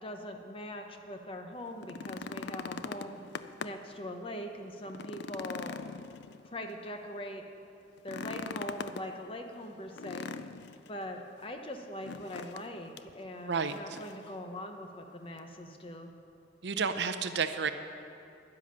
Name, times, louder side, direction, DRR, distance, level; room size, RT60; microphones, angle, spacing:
voice 1, 0.0-3.2 3.6-5.9 6.4-7.4 8.0-10.3 10.9-16.1, left 1 dB, 25° left, 4 dB, 0.8 m, -42 dB
sound 1, 1.7-3.9 4.3-4.4 4.9-6.8 8.0-9.1 10.0-10.9 12.0-12.7 13.0-13.1 13.7-14.3 15.4-15.5, left 5 dB, 60° left, 0.4 m, -41 dB
voice 2, 16.6-17.7, right 5 dB, 60° right, 10 dB, 0.6 m, -30 dB
10.5 x 10.0 x 6.8 m, 2.6 s
head